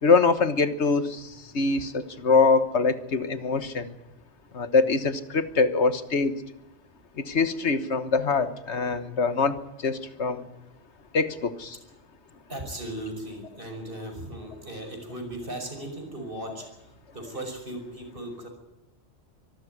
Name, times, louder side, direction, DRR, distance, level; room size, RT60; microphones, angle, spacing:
voice 1, 0.0-3.9 4.5-6.3 7.2-10.5 11.1-11.8, left 4 dB, 70° left, 11 dB, 1.6 m, -24 dB
voice 2, 12.5-16.6 17.1-18.5, right 1 dB, 50° right, 4 dB, 5.9 m, -37 dB
24.0 x 14.0 x 9.5 m, 0.88 s
omnidirectional pair, 1.2 m